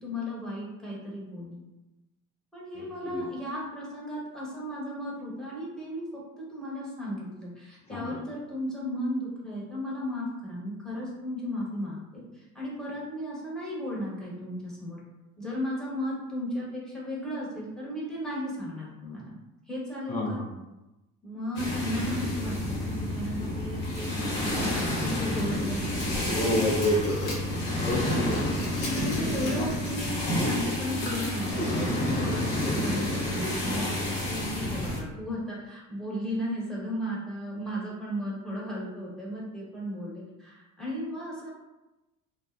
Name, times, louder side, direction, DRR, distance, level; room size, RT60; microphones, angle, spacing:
voice 1, 0.0-1.6 2.5-15.0 15.4-19.3 19.7-20.4 21.2-26.3 28.8-41.5, equal, ahead, -6 dB, 1.0 m, -35 dB
voice 2, 2.8-3.2 7.9-8.2 20.1-20.5 26.3-27.4 27.8-28.4 29.5-29.7, left 1 dB, 15° left, -5 dB, 0.4 m, -29 dB
sound 1, 21.6-35.0, left 1 dB, 60° left, 1.0 m, -29 dB
sound 2, 24.1-25.2 25.6-27.6 27.9-30.0 30.3-30.4 31.2-31.3, left 2 dB, 85° left, 0.8 m, -41 dB
2.4 x 2.1 x 2.4 m, 1.0 s
hypercardioid pair, 55°, 41 cm